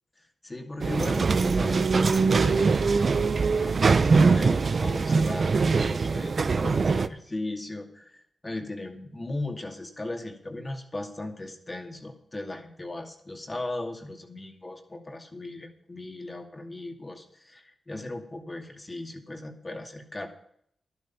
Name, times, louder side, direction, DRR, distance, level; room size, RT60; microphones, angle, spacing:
voice 1, 0.2-6.3 6.6-20.3, left 2 dB, 30° left, 3 dB, 2.4 m, -37 dB
sound 1, 0.8-7.1, right 4 dB, 55° right, 0.6 m, -22 dB
11.5 x 11.5 x 5.8 m, 0.68 s
cardioid pair, 55°, 0 cm